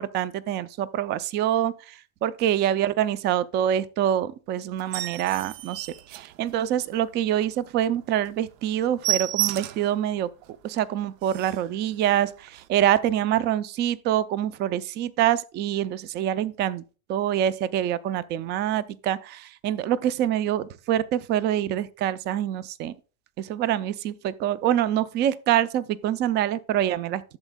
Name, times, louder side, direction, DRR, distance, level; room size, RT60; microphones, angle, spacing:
voice 1, 0.0-10.3 10.6-16.8 17.1-22.9 23.4-27.2, right 11 dB, 25° right, 0.4 m, -25 dB
sound 1, 4.8-6.9 7.3-7.5 7.8-7.9 8.2-8.4 8.6-10.0 10.4-10.5 10.9-11.0 11.2-11.7 12.5-12.6, right 14 dB, 70° right, 0.7 m, -31 dB
12.5 x 7.2 x 2.2 m
supercardioid pair, 145°, 41 cm